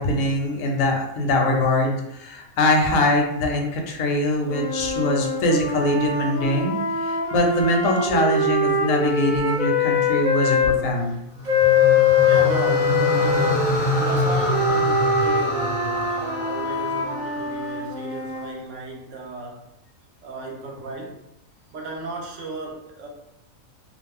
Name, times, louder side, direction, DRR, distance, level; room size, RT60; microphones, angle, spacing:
voice 1, 0.0-11.2, left 1 dB, 75° left, 2 dB, 0.9 m, -22 dB
sound 1, 4.5-10.8 11.5-18.6, left 4 dB, 55° right, 0.5 m, -23 dB
sound 2, 11.4-17.7, left 1 dB, 50° left, 0.6 m, -26 dB
voice 2, 12.2-19.7 20.2-21.2 21.7-23.1, right 3 dB, 70° right, 1 dB, 0.9 m, -35 dB
2.5 x 2.5 x 3.2 m, 0.82 s
omnidirectional pair, 1.4 m